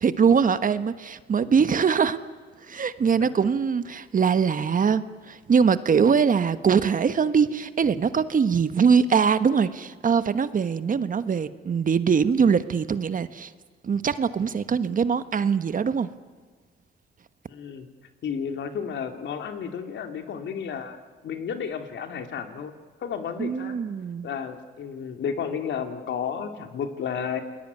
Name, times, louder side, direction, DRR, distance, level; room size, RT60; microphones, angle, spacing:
voice 1, 0.0-2.2 2.7-13.5 13.8-16.1 23.4-24.3, right 6 dB, 40° right, 12 dB, 1.3 m, -22 dB
voice 2, 17.5-17.9 18.2-22.7 23.0-23.8 24.2-27.4, left 7 dB, 65° left, 6 dB, 2.8 m, -32 dB
29.0 x 20.5 x 9.5 m, 1.5 s
cardioid pair, 90°, 20 cm